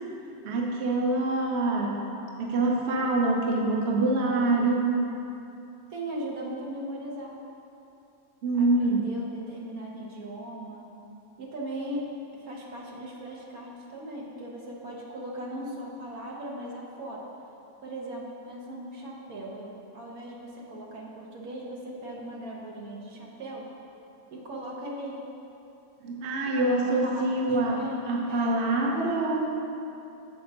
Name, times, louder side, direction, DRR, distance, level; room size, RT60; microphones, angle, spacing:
voice 1, 0.4-2.0 2.4-5.0 8.4-9.1 26.0-27.8 28.1-29.5, right 2 dB, 55° right, -1 dB, 1.0 m, -25 dB
voice 2, 5.9-7.4 8.6-10.9 11.4-12.1 12.3-17.2 17.8-23.6 24.3-25.2 26.6-28.6, right 1 dB, 75° right, -3 dB, 1.5 m, -38 dB
7.3 x 4.2 x 5.9 m, 2.8 s
omnidirectional pair, 1.5 m